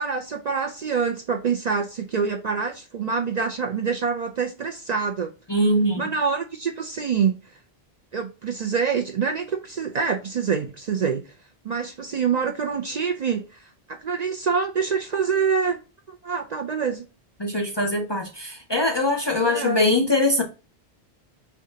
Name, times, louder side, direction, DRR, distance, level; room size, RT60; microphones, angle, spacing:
voice 1, 0.0-5.3 6.0-7.4 8.1-11.2 11.6-13.6 13.9-15.8 16.1-17.0 19.4-19.8, right 6 dB, 55° right, 0.5 m, -26 dB
voice 2, 5.5-6.1 17.4-20.4, left 1 dB, 35° left, 0.5 m, -22 dB
4.8 x 3.3 x 2.7 m
omnidirectional pair, 1.0 m